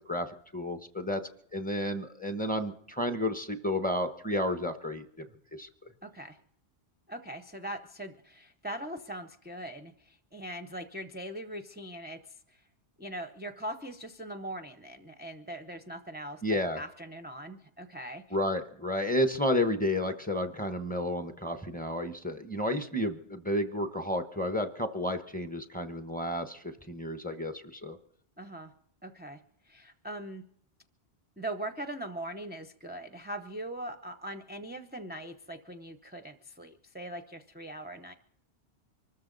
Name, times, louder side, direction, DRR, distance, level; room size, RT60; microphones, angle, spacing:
voice 1, 0.5-1.2 1.5-5.2 5.6-5.7 16.4-16.8 18.3-28.0, left 1 dB, 10° left, 7 dB, 0.9 m, -31 dB
voice 2, 6.0-6.4 7.1-12.6 13.0-18.4 28.4-28.7 29.0-30.4 31.4-38.1, right 1 dB, 10° right, 8 dB, 0.6 m, -41 dB
24.5 x 13.5 x 4.0 m, 0.64 s
omnidirectional pair, 1.1 m